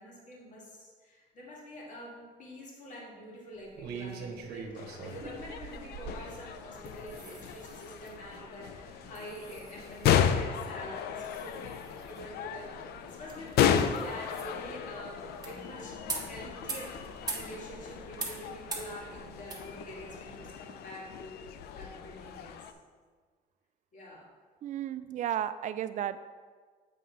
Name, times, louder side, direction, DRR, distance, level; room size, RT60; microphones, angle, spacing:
voice 1, 0.0-22.6 23.9-24.3, equal, 50° left, -4 dB, 2.2 m, -46 dB
sound 1, 3.6-20.6, right 5 dB, 75° right, 1.0 m, -49 dB
sound 2, 4.7-22.7, left 9 dB, 70° left, 0.5 m, -34 dB
sound 3, 5.0-21.9, right 3 dB, 25° right, 1.4 m, -46 dB
voice 2, 24.6-26.3, right 10 dB, 45° right, 13 dB, 0.4 m, -33 dB
7.6 x 3.7 x 5.5 m, 1.5 s
cardioid pair, 110°, 17 cm